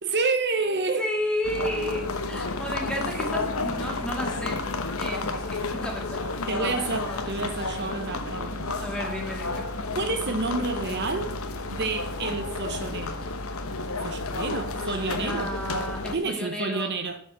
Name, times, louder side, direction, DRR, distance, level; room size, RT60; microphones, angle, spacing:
voice 1, 0.0-1.1 3.2-3.3 6.5-8.9 9.9-11.3 11.7-13.2 14.0-15.5 16.1-17.2, right 3 dB, 50° right, 0.9 m, -29 dB
voice 2, 1.0-4.6 5.0-6.8 7.0-7.6 8.8-9.7 14.7-17.0, equal, 5° left, 2.3 m, -33 dB
sound 1, 1.4-16.2, left 3 dB, 70° left, 1.1 m, -31 dB
11.5 x 5.1 x 7.5 m
head